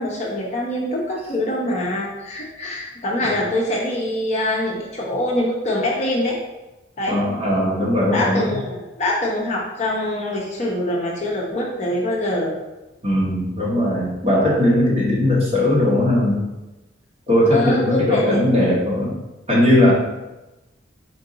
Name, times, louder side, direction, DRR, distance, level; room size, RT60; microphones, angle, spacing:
voice 1, 0.0-6.4 7.0-7.2 8.1-12.6 17.5-18.4, left 1 dB, 35° left, -3 dB, 0.7 m, -24 dB
voice 2, 7.1-8.5 13.0-16.4 17.3-19.2 19.5-19.9, left 1 dB, 30° right, -6 dB, 1.2 m, -18 dB
4.5 x 2.6 x 3.8 m, 1.0 s
head